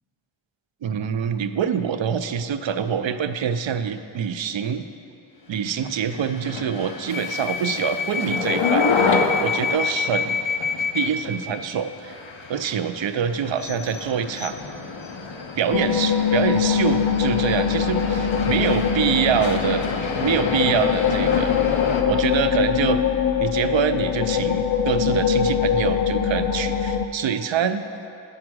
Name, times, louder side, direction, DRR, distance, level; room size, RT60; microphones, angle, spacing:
voice 1, 0.8-4.8 5.5-10.4 10.9-12.1 12.5-14.6 15.6-19.8 20.2-21.5 22.1-23.0 23.4-27.8, right 7 dB, 70° right, 10 dB, 0.5 m, -25 dB
sound 1, 5.7-22.0, left 4 dB, 80° left, 0.7 m, -27 dB
sound 2, 15.7-27.1, left 8 dB, 55° left, 0.5 m, -23 dB
8.6 x 5.5 x 6.2 m, 2.8 s
wide cardioid pair, 85°, 46 cm